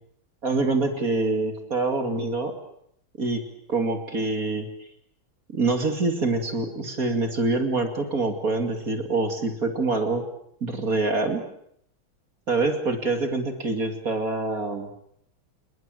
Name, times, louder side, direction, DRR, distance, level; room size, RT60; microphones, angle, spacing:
voice 1, 0.4-2.5 3.2-3.4 3.7-4.7 5.5-10.2 10.6-11.4 12.5-14.9, right 3 dB, 40° right, 6 dB, 2.9 m, -25 dB
28.0 x 20.5 x 7.7 m, 0.70 s
omnidirectional pair, 2.3 m